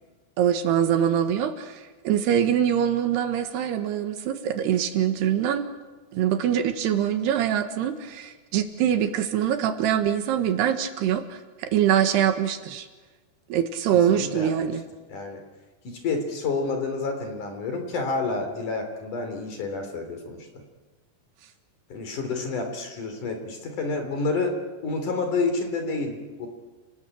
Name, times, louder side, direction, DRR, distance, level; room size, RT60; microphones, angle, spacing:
voice 1, 0.4-5.7 6.1-12.9 13.5-14.8, right 9 dB, 80° right, 7 dB, 3.5 m, -24 dB
voice 2, 13.9-14.7 15.1-15.4 15.8-20.5 21.9-26.5, left 3 dB, 50° left, 5 dB, 4.7 m, -29 dB
30.0 x 19.5 x 8.7 m, 1.3 s
omnidirectional pair, 4.8 m